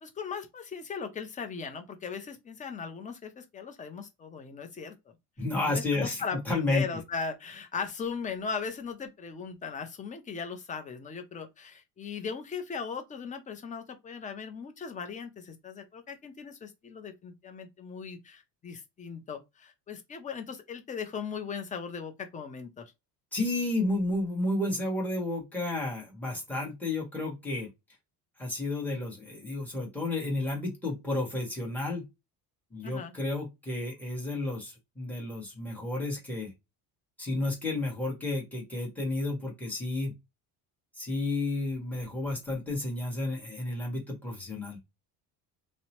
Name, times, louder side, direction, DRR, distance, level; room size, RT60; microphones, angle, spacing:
voice 1, 0.0-5.1 5.6-22.9 32.8-33.1, left 5 dB, 20° left, 0.5 m, -38 dB
voice 2, 5.4-6.8 23.3-27.7 28.4-32.0 32.7-36.5 37.2-40.1 41.0-44.8, left 2 dB, 5° left, 1.2 m, -31 dB
2.7 x 2.1 x 2.8 m
cardioid pair, 130°, 39 cm